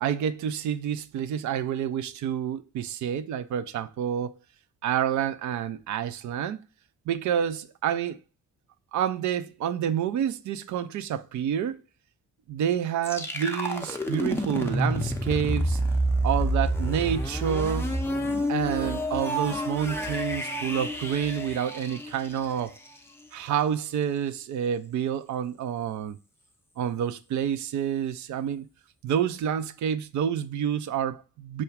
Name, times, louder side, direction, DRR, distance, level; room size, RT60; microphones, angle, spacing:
voice 1, 0.0-4.4 4.8-6.6 7.1-8.2 8.9-11.8 12.5-15.8 16.2-17.9 18.5-22.8 23.3-26.2 26.8-28.7 29.0-31.6, right 9 dB, 40° right, 0.5 m, -28 dB
sound 1, 13.0-22.9, equal, 5° left, 0.6 m, -29 dB
6.0 x 2.2 x 3.3 m
figure-of-eight pair, 40°, 46 cm